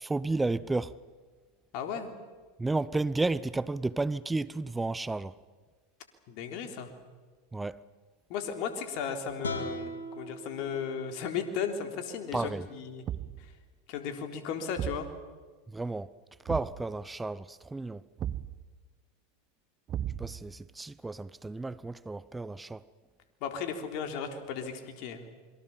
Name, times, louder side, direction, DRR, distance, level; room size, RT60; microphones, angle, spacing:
voice 1, 0.0-0.9 2.6-5.3 7.5-7.8 12.3-12.7 15.7-16.1 16.4-18.0 20.2-22.8, right 3 dB, 10° right, 0.7 m, -32 dB
voice 2, 1.7-2.1 6.3-6.9 8.3-13.0 13.4-13.5 13.9-15.1 23.4-25.3, left 6 dB, 55° left, 4.0 m, -35 dB
sound 1, 9.4-12.6, left 1 dB, 90° left, 2.9 m, -41 dB
Thump thud, 13.1-13.5 14.8-15.1 16.5-16.8 18.2-18.6 19.9-20.5, right 10 dB, 35° right, 1.1 m, -35 dB
27.5 x 23.5 x 7.4 m
hypercardioid pair, 90°, 0 cm